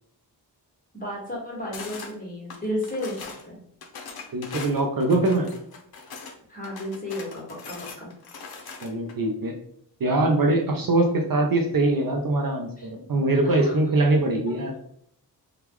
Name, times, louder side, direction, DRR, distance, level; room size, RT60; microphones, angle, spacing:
voice 1, 0.9-3.6 6.5-8.1 12.8-12.9 13.4-13.7, left 1 dB, 20° left, -4 dB, 1.4 m, -33 dB
sound 1, 1.7-2.1 2.5-3.4 3.8-6.3 6.6-9.1, left 4 dB, 60° left, 0.7 m, -40 dB
voice 2, 4.3-5.5 8.8-9.5 10.0-14.7, right 2 dB, 55° right, 2 dB, 0.6 m, -22 dB
3.6 x 2.4 x 3.0 m, 0.67 s
wide cardioid pair, 85°, 42 cm